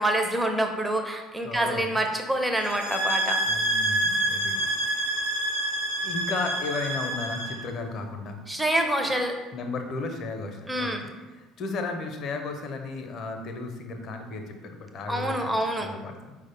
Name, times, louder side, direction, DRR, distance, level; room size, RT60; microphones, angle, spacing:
voice 1, 0.0-3.4 8.5-9.4 10.7-11.0 15.1-15.9, right 1 dB, 5° right, 3 dB, 0.4 m, -26 dB
voice 2, 1.4-1.9 3.4-5.1 6.0-8.4 9.5-11.1 11.4-16.4, left 3 dB, 45° left, 5 dB, 0.5 m, -34 dB
sound 1, 2.6-7.6, right 1 dB, 85° right, 0.6 m, -27 dB
4.7 x 2.1 x 4.2 m, 1.2 s
figure-of-eight pair, 60°, 0 cm